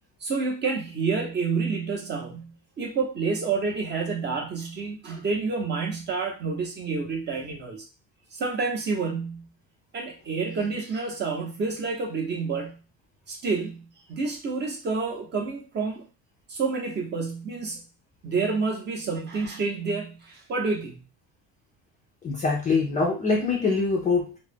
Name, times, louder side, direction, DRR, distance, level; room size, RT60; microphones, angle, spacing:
voice 1, 0.2-7.8 8.3-9.5 9.9-12.8 13.3-16.0 16.5-17.8 18.2-21.0, right 4 dB, 30° right, 0 dB, 0.6 m, -29 dB
voice 2, 22.2-24.4, left 4 dB, 20° left, -1 dB, 0.3 m, -24 dB
2.3 x 2.0 x 3.3 m, 0.32 s
cardioid pair, 160°, 36 cm